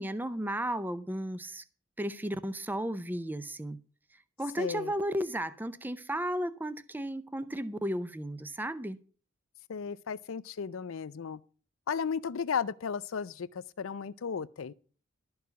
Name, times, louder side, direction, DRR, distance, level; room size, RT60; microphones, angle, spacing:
voice 1, 0.0-1.6 2.0-3.8 4.4-9.0, equal, 10° right, 0.5 m, -34 dB
voice 2, 4.6-4.9 9.7-11.4 11.9-14.7, left 6 dB, 90° left, 0.5 m, -34 dB
12.5 x 4.8 x 8.0 m
head